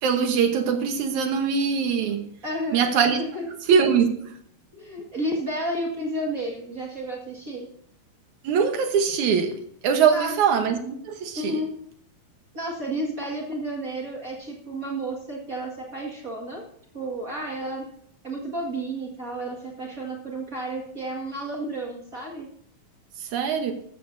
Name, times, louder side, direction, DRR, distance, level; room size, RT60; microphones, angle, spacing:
voice 1, 0.0-2.2 2.7-3.2 3.7-4.1 8.4-11.6 23.2-23.7, right 6 dB, 65° right, 6 dB, 2.2 m, -22 dB
voice 2, 2.4-2.8 3.2-3.5 4.7-7.7 10.1-10.3 11.3-11.7 12.5-16.6 16.9-17.9 18.2-22.5, right 1 dB, 35° right, -1 dB, 1.4 m, -31 dB
13.5 x 13.5 x 2.6 m, 0.67 s
omnidirectional pair, 4.2 m